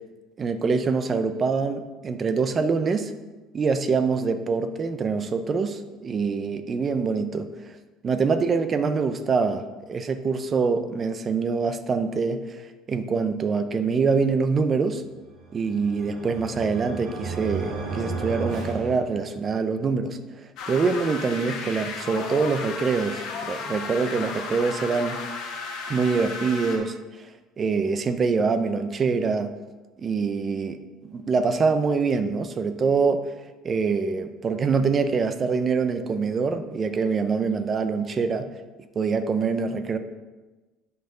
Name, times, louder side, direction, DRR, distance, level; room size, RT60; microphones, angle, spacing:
voice 1, 0.4-3.1 3.5-7.5 8.0-9.6 9.9-12.6 12.9-15.0 15.5-20.2 20.7-25.2 25.9-27.0 27.6-29.5 30.0-30.8 31.1-33.3 33.6-38.5 39.0-40.0, right 5 dB, 25° right, 9 dB, 0.5 m, -24 dB
sound 1, 15.4-19.7, right 4 dB, 55° right, 2.0 m, -34 dB
sound 2, 20.6-26.8, left 4 dB, 55° left, 1.3 m, -34 dB
10.0 x 5.5 x 3.8 m, 1.2 s
cardioid pair, 155°, 0 cm